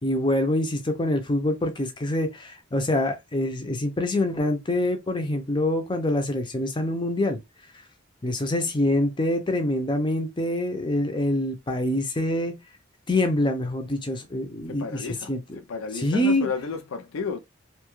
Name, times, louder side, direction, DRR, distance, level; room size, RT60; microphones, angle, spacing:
voice 1, 0.0-7.4 8.2-12.6 13.1-15.4 15.9-16.5, left 1 dB, 20° left, 0.5 m, -25 dB
voice 2, 14.7-17.4, left 5 dB, 75° left, 0.4 m, -33 dB
2.8 x 2.3 x 3.0 m
head